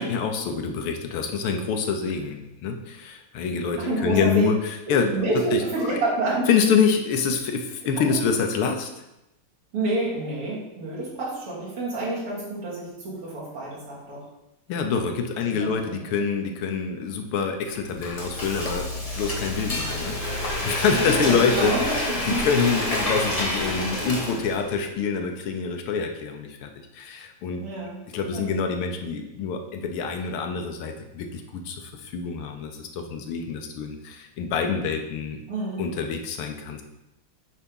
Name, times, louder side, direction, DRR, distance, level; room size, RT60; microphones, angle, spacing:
voice 1, 0.0-5.1 5.5-5.6 5.9-6.0 6.5-8.9 14.7-18.9 19.1-21.7 22.3-27.6 28.1-35.4 35.8-36.8, left 5 dB, 80° left, 5 dB, 1.7 m, -26 dB
voice 2, 3.8-4.4 4.9-6.5 8.1-8.2 9.7-14.2 15.5-16.0 21.1-21.9 22.2-22.4 27.6-28.0 28.3-28.4 35.5-35.8, right 2 dB, 85° right, -7 dB, 3.4 m, -28 dB
Frying (food), 17.7-24.7, left 1 dB, 25° left, 0.8 m, -28 dB
8.4 x 3.5 x 5.4 m, 0.91 s
omnidirectional pair, 2.4 m